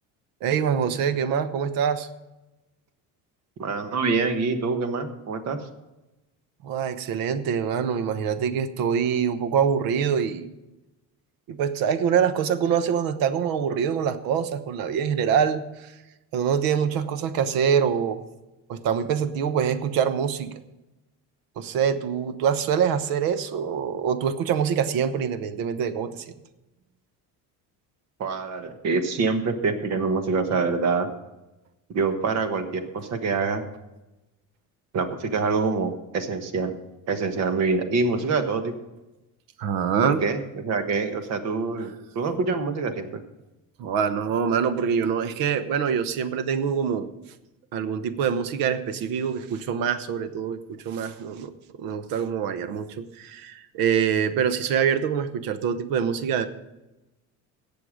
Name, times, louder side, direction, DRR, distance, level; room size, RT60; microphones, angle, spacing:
voice 1, 0.4-2.1 6.6-10.5 11.5-15.9 16.3-18.2 18.7-20.5 21.6-26.3 39.6-40.2 43.8-47.1 47.7-50.6 50.8-51.5 51.8-56.5, right 7 dB, 80° right, 12 dB, 1.0 m, -25 dB
voice 2, 3.6-5.6 28.2-31.1 31.9-33.6 34.9-36.7 37.1-38.7 40.0-43.2, right 4 dB, 50° right, 8 dB, 1.3 m, -25 dB
17.5 x 6.9 x 5.0 m, 1.0 s
cardioid pair, 155°, 34 cm